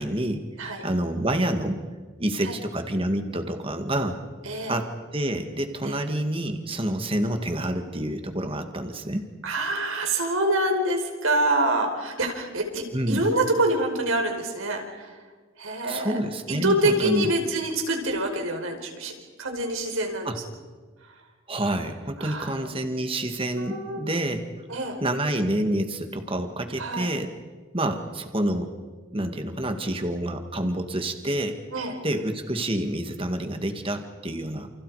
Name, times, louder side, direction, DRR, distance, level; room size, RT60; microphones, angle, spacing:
voice 1, 0.0-0.5 0.8-1.8 2.2-4.2 4.7-9.3 12.9-13.2 15.9-17.3 20.2-20.4 21.5-24.5 25.0-27.3 27.7-28.7 29.1-31.6 32.0-34.7, right 1 dB, 25° right, 6 dB, 2.0 m, -28 dB
voice 2, 4.5-4.8 5.8-6.0 9.4-15.1 15.6-16.2 16.5-19.1 19.4-20.3 22.2-22.7 23.5-24.1 24.7-25.0 26.8-27.1 31.7-32.0, right 1 dB, 75° right, 3 dB, 4.8 m, -26 dB
29.5 x 29.0 x 5.0 m, 1.4 s
head